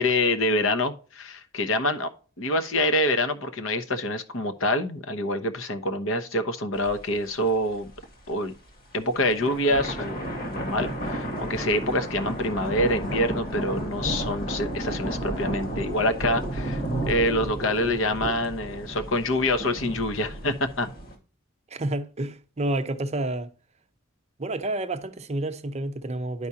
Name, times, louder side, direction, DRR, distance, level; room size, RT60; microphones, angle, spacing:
voice 1, 0.0-2.1 2.4-7.9 8.3-8.5 8.9-20.9, left 1 dB, 70° left, 1.0 m, -26 dB
sound 1, 6.9-7.0 7.3-7.4 7.9-8.3 9.0-21.1, right 1 dB, 50° left, 2.1 m, -32 dB
voice 2, 21.7-23.5 24.4-26.5, right 2 dB, 35° right, 0.7 m, -29 dB
11.5 x 4.8 x 2.8 m
head